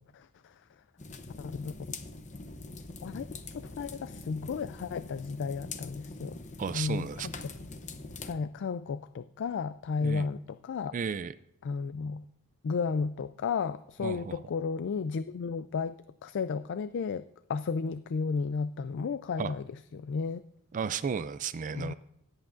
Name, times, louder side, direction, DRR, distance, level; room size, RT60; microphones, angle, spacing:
voice 1, 0.1-0.6 1.4-1.7 3.0-3.3 3.6-6.4 6.7-7.3 8.2-10.9 11.6-12.2 12.6-15.9 16.2-19.6 19.9-20.4 21.7-21.9, left 5 dB, 55° left, 13 dB, 0.4 m, -33 dB
sound 1, 1.0-8.3, left 3 dB, 35° left, 0.8 m, -43 dB
voice 2, 6.6-7.3 10.0-10.3 10.9-11.3 14.0-14.4 19.4-19.5 20.7-21.9, right 6 dB, 35° right, 14 dB, 0.4 m, -33 dB
17.5 x 8.4 x 2.5 m, 0.79 s
head